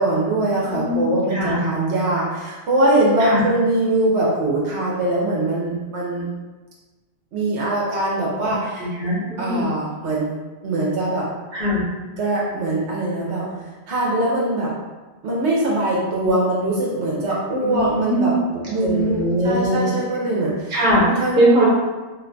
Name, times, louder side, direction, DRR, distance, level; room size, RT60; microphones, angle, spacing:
voice 1, 0.0-6.3 7.3-8.9 9.4-10.3 10.6-11.3 12.2-14.7 15.2-20.7 21.0-21.7, right 2 dB, 80° right, -5 dB, 1.0 m, -22 dB
voice 2, 0.6-1.6 3.2-3.4 8.4-9.7 11.5-11.8 17.6-18.3 18.8-19.9 20.7-21.7, equal, 50° right, -6 dB, 1.1 m, -21 dB
2.6 x 2.2 x 3.8 m, 1.2 s
omnidirectional pair, 1.1 m